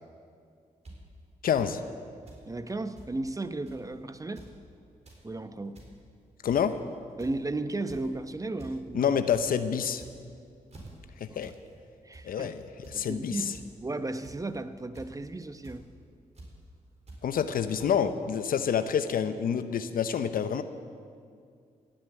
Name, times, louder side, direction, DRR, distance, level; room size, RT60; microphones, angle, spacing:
sound 1, 0.8-0.9 1.5-1.7 2.3-2.4 2.7-3.1 3.6-3.9 4.2-4.5 4.9-5.2 5.6-5.9 6.5-6.8 7.2-7.5 7.9-8.1 8.6-8.7 9.1-9.4 9.9-10.3 10.7-10.9 11.4-11.6 11.9-12.2 12.8-13.0 13.5-13.6 14.2-14.5 14.9-15.2 15.6-15.8 16.3-16.5 17.1-17.2 17.8-17.9, right 2 dB, 45° right, 4.3 m, -48 dB
voice 1, 1.4-1.8 6.4-6.8 8.9-10.0 11.2-11.5 12.2-12.6 12.9-13.4 17.2-20.6, left 8 dB, 70° left, 11 dB, 0.7 m, -27 dB
voice 2, 2.5-4.4 5.2-5.8 7.2-9.1 12.0-12.5 12.9-13.5 13.8-15.9, right 2 dB, 20° right, 11 dB, 0.8 m, -34 dB
16.5 x 7.4 x 9.0 m, 2.3 s
supercardioid pair, 55°, 15 cm